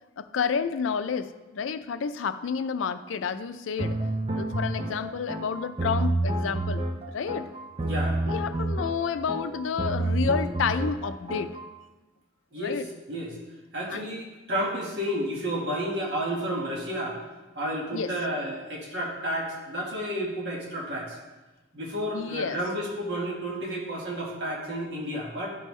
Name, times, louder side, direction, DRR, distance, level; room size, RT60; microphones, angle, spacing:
voice 1, 0.2-4.0 4.4-6.8 7.1-7.5 8.3-11.5 12.6-12.9 13.9-14.1 17.9-18.1 22.1-22.6, left 6 dB, 85° left, 11 dB, 0.4 m, -30 dB
sound 1, 3.8-11.7, right 2 dB, 30° right, 0.5 m, -29 dB
voice 2, 7.8-8.2 12.5-12.8 13.1-13.4 13.7-17.2 17.5-21.2 21.7-25.5, equal, 60° right, -3 dB, 1.6 m, -31 dB
11.5 x 5.3 x 3.2 m, 1.1 s
head